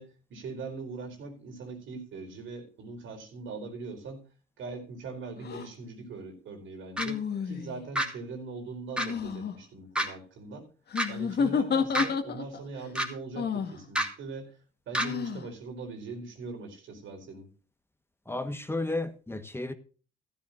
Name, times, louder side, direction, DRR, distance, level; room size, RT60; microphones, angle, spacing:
voice 1, 0.0-4.2 4.6-10.7 11.1-14.6 14.9-17.5, right 4 dB, 75° right, 4.5 m, -41 dB
sound 1, 5.4-5.7 7.0-7.9 9.0-9.5 10.9-12.6 13.3-13.8 15.0-15.5, left 6 dB, 55° left, 1.9 m, -30 dB
sound 2, 7.0-7.1 7.9-8.1 9.0-9.1 9.9-10.1 10.9-11.1 11.9-12.1 12.9-13.1 13.9-14.1 14.9-15.1, equal, 5° right, 2.7 m, -27 dB
voice 2, 18.3-19.7, left 2 dB, 10° left, 1.4 m, -33 dB
14.5 x 13.0 x 2.6 m
cardioid pair, 90°, 20 cm